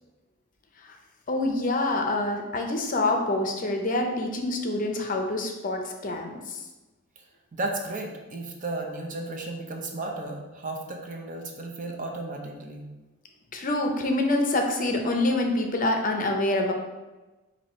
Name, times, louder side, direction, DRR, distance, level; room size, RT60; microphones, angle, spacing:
voice 1, 1.3-6.6 13.5-16.7, left 2 dB, 40° left, 3 dB, 0.6 m, -26 dB
voice 2, 7.5-12.9, right 2 dB, 40° right, 1 dB, 0.6 m, -34 dB
4.7 x 2.7 x 4.2 m, 1.1 s
head